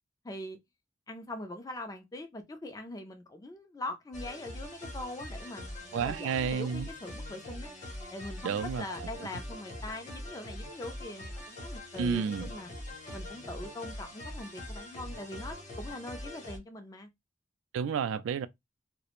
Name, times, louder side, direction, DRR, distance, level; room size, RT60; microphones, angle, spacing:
voice 1, 0.2-0.6 1.1-7.7 8.1-12.7 13.1-17.1, left 1 dB, 20° left, 0.3 m, -42 dB
sound 1, 4.1-16.6, left 1 dB, 40° left, 0.8 m, -43 dB
voice 2, 5.9-6.9 8.4-8.8 12.0-12.5 17.7-18.5, right 6 dB, 90° right, 0.3 m, -30 dB
2.4 x 2.0 x 2.9 m
head